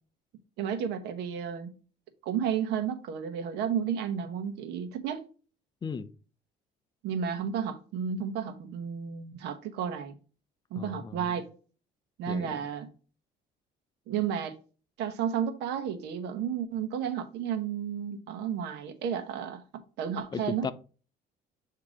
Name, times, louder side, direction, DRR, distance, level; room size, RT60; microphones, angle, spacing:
voice 1, 0.6-1.7 2.2-5.2 7.0-10.1 10.7-11.4 12.2-12.9 14.1-14.5 15.0-19.6 20.0-20.7, right 8 dB, 90° right, 1.0 m, -32 dB
voice 2, 10.8-11.4 12.3-12.6 20.3-20.7, left 5 dB, 25° left, 0.5 m, -36 dB
7.6 x 2.9 x 4.9 m
cardioid pair, 110°, 17 cm